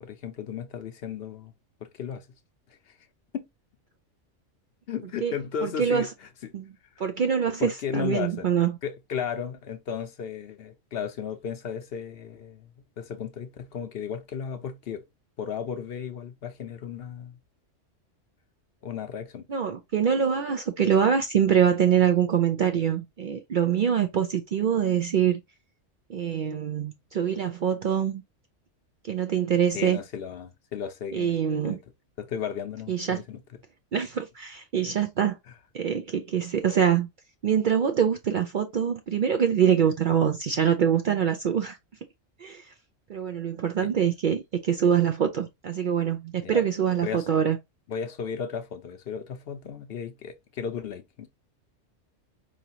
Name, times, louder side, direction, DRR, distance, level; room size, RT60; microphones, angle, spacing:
voice 1, 0.0-1.5 1.8-2.3 2.9-3.0 3.3-3.5 4.9-6.5 7.0-7.1 7.6-8.5 8.8-12.7 13.0-15.0 15.4-17.4 18.8-19.5 29.7-31.3 31.6-31.8 32.2-33.4 43.8-43.9 46.4-46.6 47.0-47.3 47.9-51.3, left 7 dB, 60° left, 0.8 m, -34 dB
voice 2, 5.6-6.1 6.5-6.7 7.0-8.8 19.5-25.4 26.1-28.2 29.0-30.0 31.1-31.8 32.9-33.2 33.9-35.4 35.7-37.1 37.4-41.8 42.4-42.7 43.1-47.6, right 8 dB, 60° right, 0.5 m, -24 dB
4.9 x 3.0 x 2.7 m
omnidirectional pair, 1.3 m